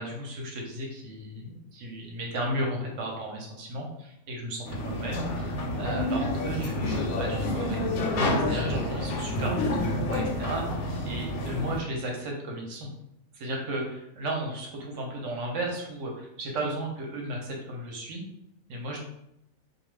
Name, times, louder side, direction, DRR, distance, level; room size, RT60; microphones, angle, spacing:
voice 1, 0.0-9.7 9.9-12.9 13.3-18.2 18.7-19.0, right 1 dB, 65° right, -1 dB, 0.9 m, -34 dB
sound 1, 4.7-11.8, left 1 dB, 75° left, 1.0 m, -29 dB
2.3 x 2.3 x 3.1 m, 0.80 s
omnidirectional pair, 1.6 m